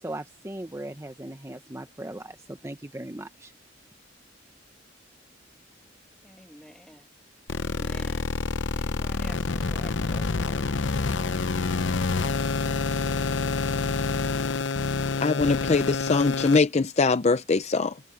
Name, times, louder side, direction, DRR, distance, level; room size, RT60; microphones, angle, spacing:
voice 1, 0.0-3.5, right 1 dB, 15° right, 1.0 m, -38 dB
voice 2, 6.2-7.1 7.5-8.3 8.7-10.6, equal, 5° left, 2.3 m, -49 dB
sound 1, 7.5-16.6, left 4 dB, 70° left, 0.7 m, -27 dB
voice 3, 15.2-18.0, left 4 dB, 35° left, 0.5 m, -22 dB
head